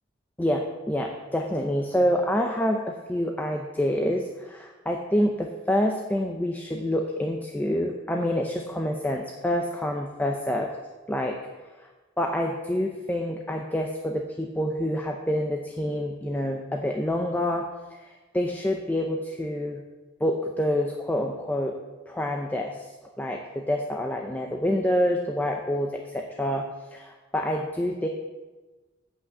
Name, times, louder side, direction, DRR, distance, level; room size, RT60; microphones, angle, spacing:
voice 1, 0.4-10.7 11.1-11.4 11.8-11.9 12.2-17.7 17.9-19.8 20.2-21.7 22.1-22.9 23.2-26.7 26.9-28.1, left 1 dB, 10° left, 2 dB, 0.6 m, -27 dB
8.3 x 6.2 x 7.9 m, 1.3 s
head